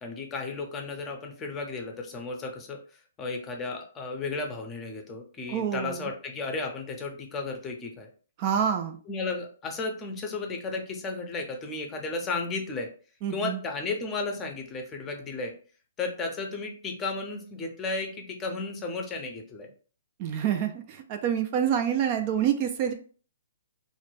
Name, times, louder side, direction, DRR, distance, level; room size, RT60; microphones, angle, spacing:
voice 1, 0.0-2.8 3.2-8.1 9.1-12.9 13.3-15.6 16.0-19.7, left 3 dB, 20° left, 3 dB, 0.6 m, -34 dB
voice 2, 5.5-6.1 8.4-9.0 13.2-13.6 20.2-22.9, right 9 dB, 40° right, 6 dB, 0.3 m, -27 dB
2.3 x 2.1 x 3.2 m, 0.40 s
hypercardioid pair, 130°, 0 cm